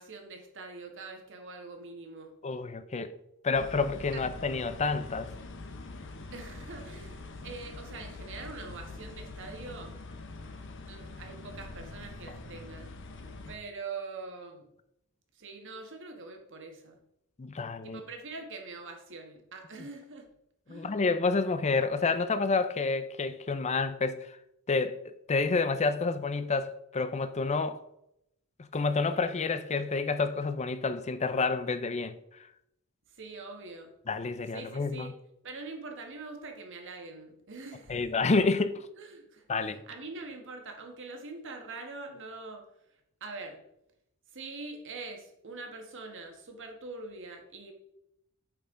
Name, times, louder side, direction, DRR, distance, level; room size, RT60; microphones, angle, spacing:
voice 1, 0.0-2.3 2.9-3.1 4.1-4.2 6.3-10.0 10.7-12.9 13.5-14.7 15.3-17.0 17.8-20.3 20.7-20.9 33.1-33.9 34.5-35.1 35.4-38.1 39.0-42.6 43.2-43.6 44.3-47.7, right 3 dB, 60° right, 1.5 m, -44 dB
voice 2, 2.4-3.1 3.4-5.3 17.4-18.0 20.7-24.4 24.7-27.8 28.6-32.2 34.1-35.1 37.9-38.9 39.5-39.8, left 4 dB, 30° left, 0.5 m, -29 dB
sound 1, 3.5-13.6, left 2 dB, 60° left, 1.0 m, -44 dB
8.5 x 5.6 x 3.8 m
head